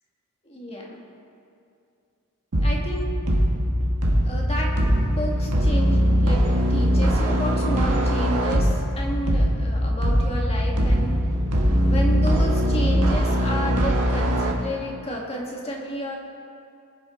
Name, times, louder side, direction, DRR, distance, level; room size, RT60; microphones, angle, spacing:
voice 1, 0.5-1.0 2.6-3.1 4.2-4.7 5.2-11.2 11.8-16.2, equal, 25° left, -1 dB, 1.8 m, -31 dB
sound 1, 2.5-14.5, equal, 85° right, 1.4 m, -21 dB
21.5 x 7.3 x 3.8 m, 2.5 s
head